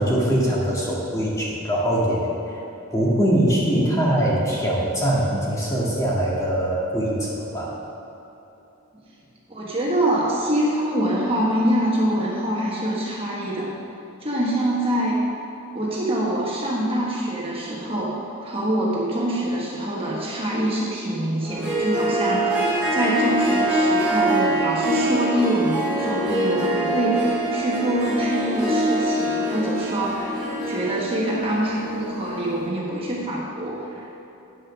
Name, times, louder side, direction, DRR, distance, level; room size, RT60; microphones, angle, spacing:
voice 1, 0.0-2.6 2.9-7.8, right 1 dB, 15° left, -5 dB, 1.7 m, -22 dB
voice 2, 9.5-13.7 14.2-15.2 15.7-34.2, right 1 dB, 25° right, -5 dB, 1.3 m, -25 dB
Harp, 21.4-32.7, right 1 dB, 5° right, 2.3 m, -24 dB
9.6 x 6.5 x 6.2 m, 3.0 s
head